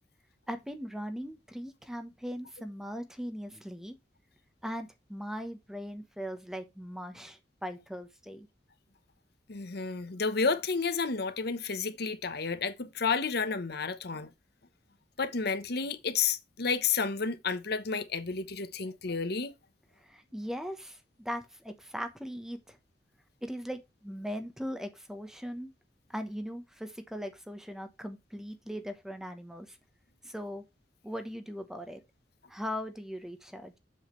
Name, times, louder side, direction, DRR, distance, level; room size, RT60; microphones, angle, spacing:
voice 1, 0.5-3.9 4.6-8.5 20.0-22.8 23.4-25.7 26.1-29.8 30.2-30.6 31.0-32.0 32.5-33.8, equal, 5° right, 1.0 m, -39 dB
voice 2, 9.5-14.3 15.2-19.5, left 5 dB, 65° left, 1.1 m, -31 dB
7.7 x 7.3 x 3.2 m
head